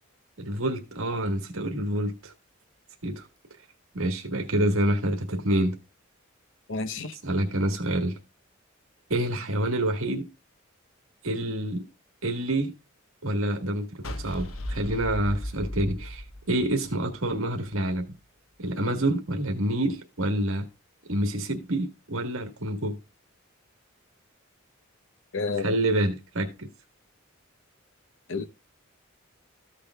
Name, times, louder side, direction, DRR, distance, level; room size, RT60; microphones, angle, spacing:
voice 1, 0.4-2.3 3.0-3.3 3.9-5.8 7.2-8.2 9.1-10.3 11.2-11.8 12.2-12.7 13.2-18.1 18.6-20.7 21.1-23.0 25.6-26.7, right 1 dB, 80° right, 1.6 m, -27 dB
voice 2, 6.7-7.1 25.3-25.7 28.3-28.4, left 4 dB, 65° left, 0.9 m, -30 dB
sound 1, 14.0-17.3, left 1 dB, 85° left, 1.2 m, -35 dB
14.5 x 6.7 x 2.3 m
head